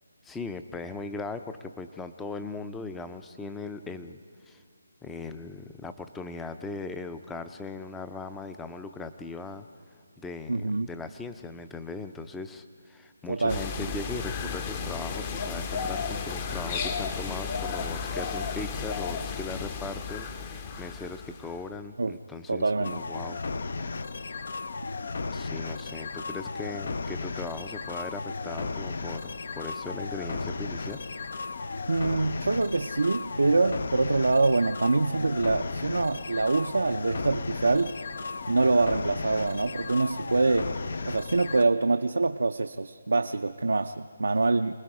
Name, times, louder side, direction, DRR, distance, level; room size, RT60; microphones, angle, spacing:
voice 1, 0.2-4.2 4.5-4.6 5.0-9.7 10.2-23.4 25.3-31.0, left 3 dB, 5° left, 9 dB, 0.5 m, -39 dB
voice 2, 10.5-10.9 13.3-13.9 22.0-22.2 22.5-23.0 31.9-37.9 38.5-40.7 41.0-44.7, right 3 dB, 85° right, 6 dB, 0.5 m, -25 dB
sound 1, 13.5-21.6, left 5 dB, 30° left, 0.9 m, -33 dB
sound 2, 22.8-41.6, left 3 dB, 60° left, 0.6 m, -35 dB
28.0 x 19.5 x 4.8 m, 2.3 s
figure-of-eight pair, 160°, 0 cm